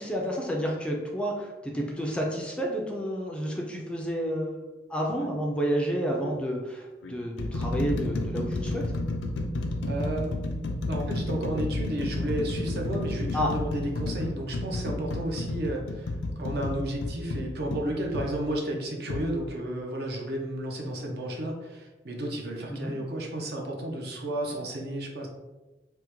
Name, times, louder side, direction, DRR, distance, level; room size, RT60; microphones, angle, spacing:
voice 1, 0.0-8.9 13.3-13.5 22.7-22.9, equal, 5° left, -1 dB, 0.3 m, -30 dB
sound 1, 5.1-5.3 6.2-6.4 7.0-18.3 19.1-19.3, left 2 dB, 85° left, 0.4 m, -31 dB
voice 2, 9.8-10.3 10.8-25.3, right 1 dB, 60° right, 1 dB, 0.6 m, -32 dB
3.4 x 2.1 x 2.9 m, 1.1 s
head